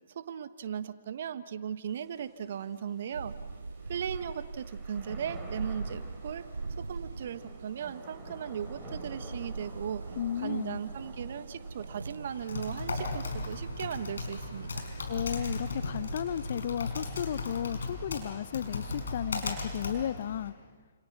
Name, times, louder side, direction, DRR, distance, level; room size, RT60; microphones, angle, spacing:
voice 1, 0.1-3.3 3.9-6.4 6.8-10.0 10.4-14.8, right 8 dB, 55° right, 12 dB, 1.4 m, -37 dB
Thunder / Rain, 1.9-20.1, right 2 dB, 10° right, 5.7 m, -54 dB
sound 1, 3.1-16.8, right 3 dB, 80° right, 0.8 m, -42 dB
voice 2, 10.2-10.8 15.1-20.5, left 10 dB, 55° left, 17 dB, 0.7 m, -34 dB
Typing, 12.3-20.5, left 3 dB, 70° left, 5.3 m, -37 dB
30.0 x 28.0 x 6.1 m, 1.5 s
figure-of-eight pair, 125°, 0 cm